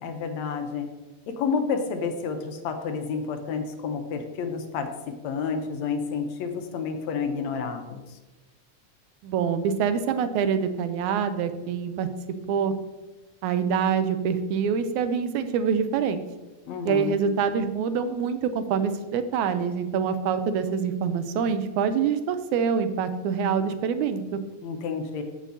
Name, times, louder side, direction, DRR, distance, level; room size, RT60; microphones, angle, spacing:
voice 1, 0.0-0.9 1.4-4.9 5.2-8.2 16.7-17.1 24.6-25.2, left 5 dB, 75° left, 5 dB, 2.0 m, -30 dB
voice 2, 9.2-12.1 12.5-12.7 13.4-16.2 16.9-24.4, right 7 dB, 90° right, 10 dB, 2.1 m, -25 dB
14.5 x 6.3 x 2.8 m, 1.1 s
omnidirectional pair, 3.4 m